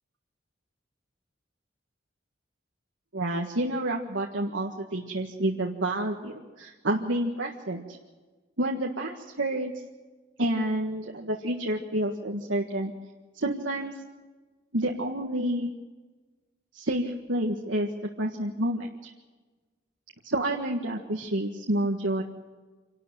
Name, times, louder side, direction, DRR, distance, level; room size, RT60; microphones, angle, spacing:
voice 1, 3.1-8.0 8.6-9.7 10.4-12.9 13.3-13.9 14.7-15.7 16.7-17.9 18.2-19.1 20.2-22.2, right 1 dB, 85° right, 0 dB, 1.7 m, -29 dB
26.5 x 12.5 x 9.1 m, 1.3 s
head